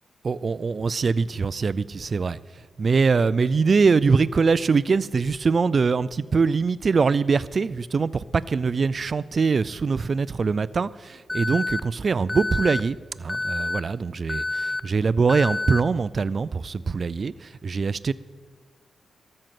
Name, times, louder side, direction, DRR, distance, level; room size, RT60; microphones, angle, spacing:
voice 1, 0.2-2.4 2.8-18.1, right 5 dB, 45° right, 18 dB, 0.4 m, -23 dB
Alarm, 11.3-11.8 12.3-12.8 13.3-13.8 14.3-14.8 15.3-15.8, left 2 dB, 10° left, 0.5 m, -28 dB
13.5 x 6.5 x 7.6 m, 1.4 s
cardioid pair, 100°, 0 cm